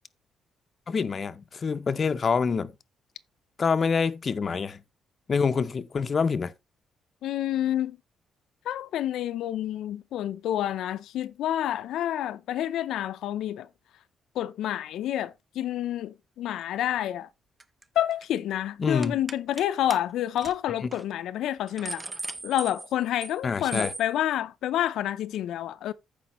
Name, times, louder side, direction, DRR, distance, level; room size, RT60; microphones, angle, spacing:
voice 1, 0.9-2.7 3.6-4.8 5.3-6.5 18.8-19.2 20.8-20.9 23.4-23.9, left 5 dB, 30° left, 0.6 m, -26 dB
voice 2, 7.2-8.0 8.7-13.7 14.4-17.3 18.0-22.0 22.4-25.9, left 12 dB, 85° left, 0.5 m, -29 dB
sound 1, 17.6-17.8 18.1-18.4 19.0-19.6 19.9-20.0 20.4-20.5 20.9-21.0 21.5-23.4 23.7-24.1, right 2 dB, 15° right, 0.6 m, -37 dB
14.5 x 5.1 x 3.0 m
cardioid pair, 165°, 0 cm